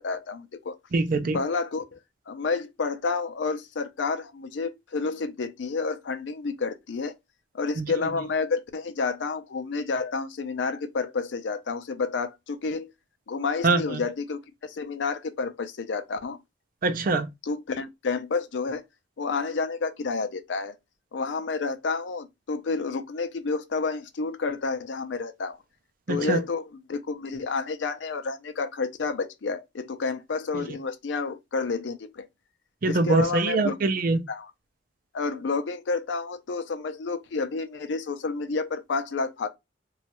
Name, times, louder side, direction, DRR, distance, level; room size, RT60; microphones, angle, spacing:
voice 1, 0.0-0.7 1.3-2.0 2.3-7.1 7.5-12.9 13.3-16.4 17.4-18.8 19.2-20.7 21.1-25.6 26.1-32.3 32.9-33.8 34.3-34.5 35.1-39.5, left 4 dB, 70° left, 0.5 m, -30 dB
voice 2, 0.9-1.4 7.8-7.9 13.6-14.0 16.8-17.3 26.1-26.4 32.8-34.2, right 3 dB, 50° right, 0.5 m, -23 dB
3.1 x 2.3 x 2.8 m
head